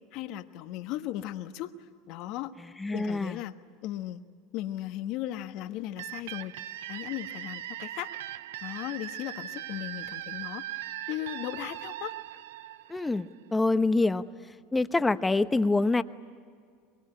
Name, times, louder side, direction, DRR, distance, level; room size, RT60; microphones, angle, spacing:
voice 1, 0.1-1.7 2.1-2.5 2.9-4.2 4.5-6.6 6.9-8.1 8.6-12.1, left 14 dB, 60° left, 9 dB, 1.3 m, -37 dB
voice 2, 2.8-3.4 12.9-14.2 14.7-16.0, left 3 dB, 10° left, 11 dB, 1.0 m, -25 dB
sound 1, 6.0-13.6, right 13 dB, 80° right, 0.7 m, -40 dB
23.5 x 23.0 x 10.0 m, 2.1 s
hypercardioid pair, 95°, 0 cm